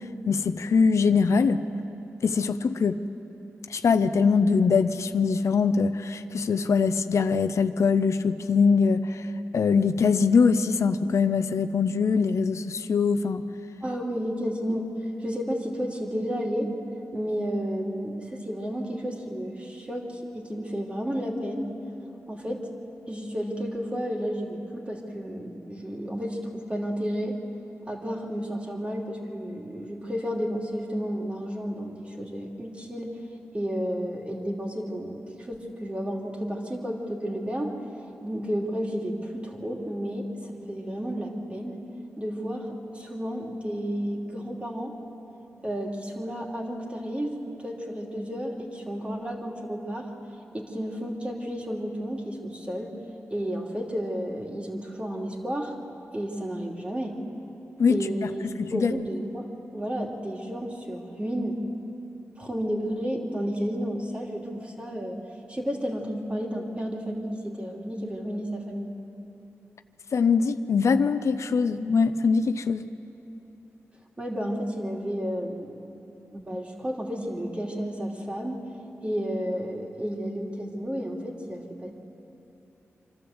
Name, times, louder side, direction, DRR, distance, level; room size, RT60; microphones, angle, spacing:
voice 1, 0.3-1.6 2.2-3.0 3.7-9.3 9.5-13.4 57.8-58.1 58.6-58.9 70.1-72.9, left 5 dB, 75° left, 10 dB, 0.6 m, -22 dB
voice 2, 13.8-14.9 15.2-16.7 17.1-21.7 22.3-22.7 23.1-27.4 27.9-33.2 33.5-35.2 35.5-37.8 38.2-41.8 42.2-42.7 42.9-44.9 45.6-50.1 50.5-53.0 53.3-55.7 56.1-57.2 57.9-59.5 59.7-61.6 62.4-65.2 65.5-69.0 74.2-75.8 76.3-78.6 79.0-81.9, equal, 25° right, 0 dB, 3.0 m, -32 dB
26.0 x 12.5 x 8.0 m, 2.9 s
cardioid pair, 75°, 5 cm